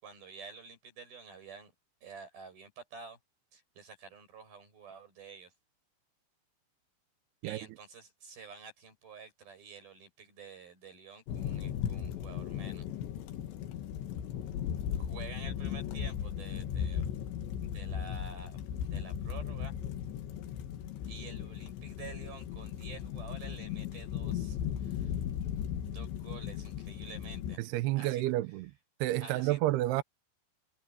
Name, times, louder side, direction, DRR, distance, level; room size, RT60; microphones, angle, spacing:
voice 1, 0.0-1.7 2.0-3.2 3.5-5.5 7.4-12.9 15.0-17.1 17.6-19.7 21.1-25.1 25.8-28.2 29.2-29.6, right 5 dB, 55° right, 9.7 m, -50 dB
sound 1, 11.3-27.6, left 9 dB, 90° left, 4.0 m, -37 dB
voice 2, 27.6-28.7 29.0-30.0, right 16 dB, 80° right, 2.6 m, -30 dB
omnidirectional pair, 5.0 m